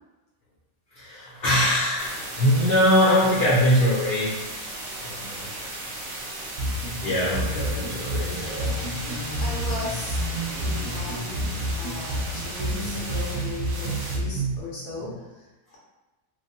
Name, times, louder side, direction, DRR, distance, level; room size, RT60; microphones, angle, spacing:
voice 1, 0.9-4.4 5.0-5.5 7.0-8.8, equal, 50° left, -7 dB, 0.8 m, -22 dB
sound 1, 2.0-14.2, right 2 dB, 55° right, 0.5 m, -36 dB
sound 2, 6.6-14.6, right 1 dB, 70° right, 0.9 m, -30 dB
sound 3, 7.5-13.5, equal, ahead, 0.4 m, -43 dB
voice 2, 9.4-10.2 10.5-15.8, left 2 dB, 90° left, -6 dB, 1.4 m, -37 dB
3.1 x 2.1 x 2.7 m, 1.1 s
omnidirectional pair, 1.5 m